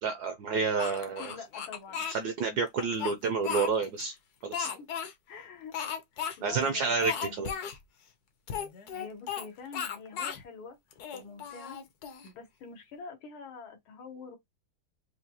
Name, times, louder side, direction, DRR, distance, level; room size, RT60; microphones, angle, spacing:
voice 1, 0.0-1.4 2.1-4.1 4.4-4.7 6.4-7.5, right 4 dB, 70° right, 1.0 m, -29 dB
Speech, 0.8-2.2 2.8-4.0 4.5-5.1 5.7-6.4 6.6-6.7 7.0-7.8 8.5-9.5 9.7-10.4 10.9-12.3, left 8 dB, 60° left, 1.1 m, -36 dB
voice 2, 1.2-2.1 4.8-4.9 5.3-5.7 6.1-7.6 8.9-10.8 11.1-11.8 12.0-14.4, left 5 dB, 85° left, 2.0 m, -46 dB
4.8 x 2.3 x 2.9 m
omnidirectional pair, 2.2 m